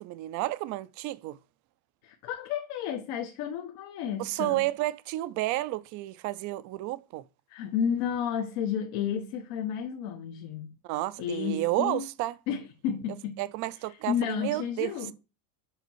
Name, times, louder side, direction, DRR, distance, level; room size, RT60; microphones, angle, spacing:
voice 1, 0.0-1.4 4.2-7.2 10.8-12.3 13.4-14.9, right 17 dB, 40° right, 0.4 m, -31 dB
voice 2, 2.0-4.7 7.5-10.8 11.2-12.1 12.5-13.4 13.8-15.1, left 8 dB, 65° left, 1.2 m, -32 dB
6.9 x 4.1 x 4.5 m
cardioid pair, 155°, 46 cm